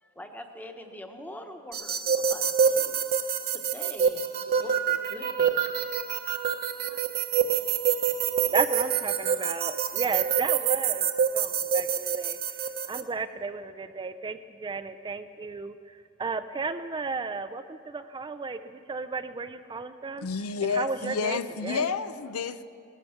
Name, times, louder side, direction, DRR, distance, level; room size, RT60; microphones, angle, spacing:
voice 1, 0.0-3.1 3.5-5.8 6.8-7.0, left 1 dB, 10° left, 5 dB, 1.1 m, -44 dB
sound 1, 1.7-13.0, right 7 dB, 45° right, 0.8 m, -26 dB
voice 2, 8.5-11.1 11.3-20.3 20.6-21.9, right 4 dB, 20° right, 10 dB, 0.4 m, -34 dB
voice 3, 20.2-22.6, left 5 dB, 85° left, 13 dB, 0.6 m, -30 dB
18.0 x 13.0 x 5.8 m, 2.5 s
head